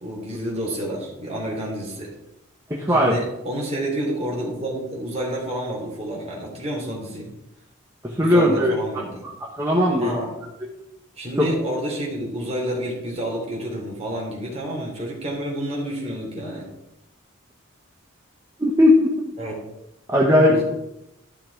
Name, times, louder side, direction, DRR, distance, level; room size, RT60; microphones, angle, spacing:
voice 1, 0.0-2.1 2.9-7.3 8.2-9.2 10.0-10.3 11.2-16.7 19.4-19.5 20.4-20.6, right 1 dB, 30° right, -2 dB, 3.1 m, -29 dB
voice 2, 2.7-3.2 8.0-8.7 9.6-10.1 11.4-11.5 18.6-19.1 20.1-20.6, left 1 dB, 15° right, -3 dB, 1.2 m, -17 dB
12.5 x 5.8 x 4.7 m, 0.89 s
head